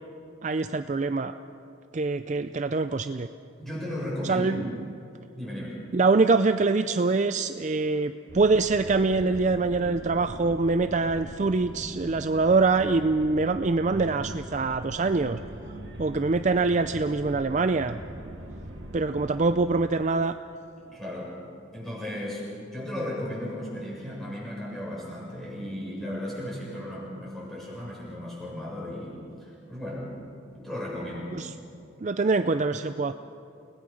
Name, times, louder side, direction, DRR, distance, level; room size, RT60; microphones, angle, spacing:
voice 1, 0.4-1.3 1.9-3.3 4.2-4.9 5.9-15.4 16.0-18.0 18.9-20.4 31.3-31.5 32.0-33.1, right 3 dB, 35° right, 10 dB, 0.4 m, -24 dB
voice 2, 3.6-4.5 5.4-5.8 20.8-21.4 21.7-30.1 30.5-31.3, left 1 dB, ahead, -6 dB, 7.1 m, -35 dB
derelict-spaceship, 8.3-19.7, right 1 dB, 60° right, 2.2 m, -41 dB
30.0 x 19.0 x 6.3 m, 2.7 s
head